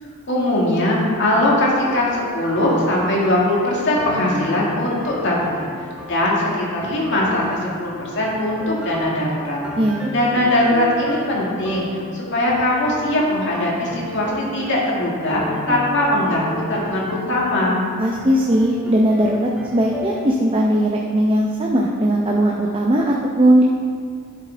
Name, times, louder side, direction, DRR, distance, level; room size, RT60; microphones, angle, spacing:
voice 1, 0.3-5.7 6.1-9.6 10.1-11.9 12.1-17.8, left 1 dB, 55° left, -4 dB, 2.0 m, -20 dB
sound 1, 1.8-20.3, left 1 dB, 5° right, 1.1 m, -35 dB
voice 2, 9.8-10.1 18.0-23.6, right 1 dB, 25° right, -1 dB, 0.6 m, -18 dB
11.0 x 7.3 x 3.4 m, 2.1 s
head